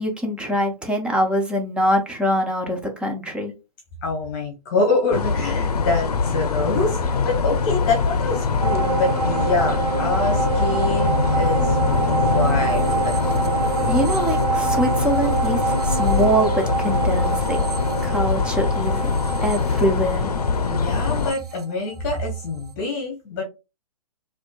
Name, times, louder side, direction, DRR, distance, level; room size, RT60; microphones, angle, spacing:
voice 1, 0.0-3.5 13.9-17.6 18.0-19.1 19.4-20.3, equal, 5° right, 3 dB, 0.5 m, -23 dB
voice 2, 4.0-13.2 20.6-23.4, left 3 dB, 30° left, 1 dB, 0.9 m, -26 dB
sound 1, 5.1-21.3, left 4 dB, 80° left, 0.6 m, -23 dB
sound 2, 8.6-22.3 22.7-22.8, right 5 dB, 85° right, 0.7 m, -26 dB
4.2 x 2.5 x 2.2 m, 0.27 s
hypercardioid pair, 135°, 19 cm